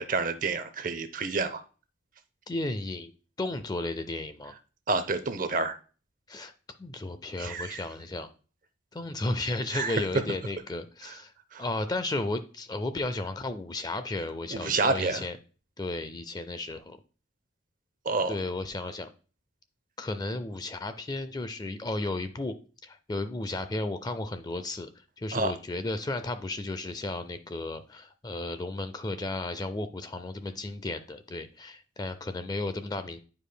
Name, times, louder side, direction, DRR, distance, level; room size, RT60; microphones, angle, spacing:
voice 1, 0.0-1.6 4.9-5.8 7.4-7.8 9.7-10.0 11.1-11.2 11.5-11.6 14.5-15.3 18.0-18.4 25.3-25.5, right 3 dB, 45° right, 0.7 m, -29 dB
voice 2, 2.5-3.1 3.4-4.5 6.3-6.5 6.8-8.3 8.9-11.3 11.6-15.4 15.8-17.0 18.3-19.1 20.0-22.5 22.8-24.9 25.2-33.2, left 2 dB, 20° left, 0.4 m, -34 dB
9.4 x 5.0 x 2.2 m
head